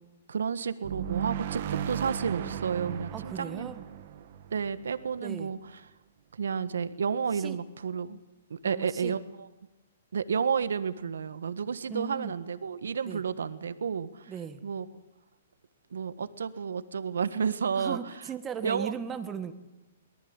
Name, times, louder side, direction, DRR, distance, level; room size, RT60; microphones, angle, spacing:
voice 1, 0.3-3.7 4.5-5.6 6.3-8.2 8.5-9.2 10.1-14.3 14.6-14.8 15.9-18.0 18.6-18.9, right 6 dB, 80° right, 13 dB, 1.4 m, -31 dB
sound 1, 0.8-5.4, right 10 dB, 55° right, 1.8 m, -36 dB
voice 2, 3.1-3.8 5.2-5.5 7.3-7.6 8.6-9.1 11.9-12.3 13.0-13.2 14.3-14.6 17.8-19.5, right 7 dB, 20° right, 8 dB, 1.6 m, -38 dB
23.0 x 18.5 x 8.8 m, 1.0 s
hypercardioid pair, 130°, 0 cm